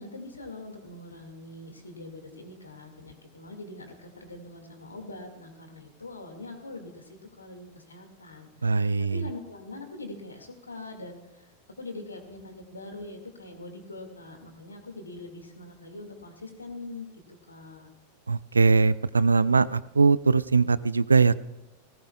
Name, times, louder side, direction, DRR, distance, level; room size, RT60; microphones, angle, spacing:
voice 1, 0.0-7.1 7.4-8.8 9.1-17.1 17.5-17.9, left 2 dB, 80° left, 5 dB, 2.1 m, -43 dB
voice 2, 8.6-9.3 18.3-21.3, right 4 dB, 75° right, 20 dB, 0.4 m, -21 dB
18.5 x 17.0 x 2.4 m, 1.0 s
figure-of-eight pair, 90°, 0 cm